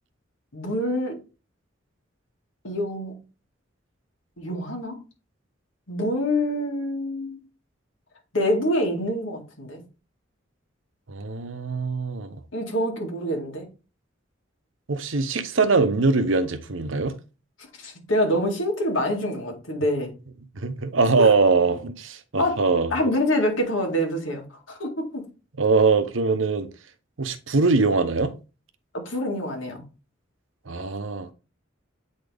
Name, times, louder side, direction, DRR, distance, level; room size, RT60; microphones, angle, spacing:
voice 1, 0.5-1.2 2.6-3.2 4.4-5.0 5.9-7.4 8.3-9.8 12.5-13.7 17.8-20.1 21.2-21.3 22.4-22.6 22.9-25.2 28.9-29.8, left 1 dB, 90° left, 2.4 m, -26 dB
voice 2, 11.1-12.4 14.9-17.2 20.5-23.1 25.6-26.7 27.2-28.3 30.7-31.3, right 4 dB, 80° right, 0.9 m, -22 dB
8.8 x 4.0 x 3.5 m
head